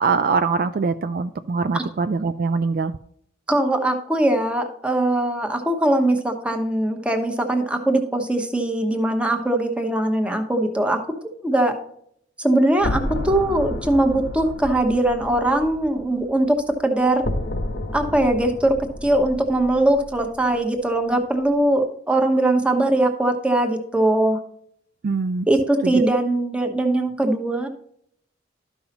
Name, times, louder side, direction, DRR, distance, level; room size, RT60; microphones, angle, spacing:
voice 1, 0.0-2.9 25.0-25.5 25.8-26.1, right 4 dB, 50° right, 10 dB, 0.3 m, -23 dB
voice 2, 3.5-11.0 11.4-11.8 12.4-17.3 17.9-18.8 19.0-24.4 25.5-27.7, right 1 dB, 5° right, 4 dB, 1.0 m, -21 dB
sound 1, 12.8-16.8 17.2-20.6, left 1 dB, 75° left, 1.1 m, -31 dB
12.5 x 5.6 x 2.9 m, 0.68 s
head